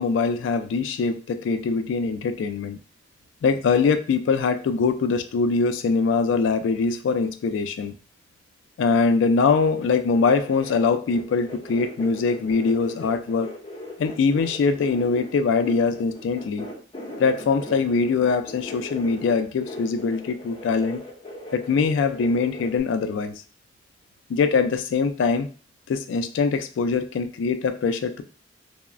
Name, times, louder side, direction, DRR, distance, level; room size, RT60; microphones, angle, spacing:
voice 1, 0.0-2.8 3.4-7.9 8.8-13.5 14.0-16.7 17.2-21.0 21.5-23.3 24.3-25.5 25.9-28.2, left 4 dB, 90° left, 10 dB, 0.3 m, -23 dB
sound 1, 9.5-22.8, left 1 dB, 30° left, 0.6 m, -39 dB
3.0 x 2.0 x 2.4 m, 0.40 s
head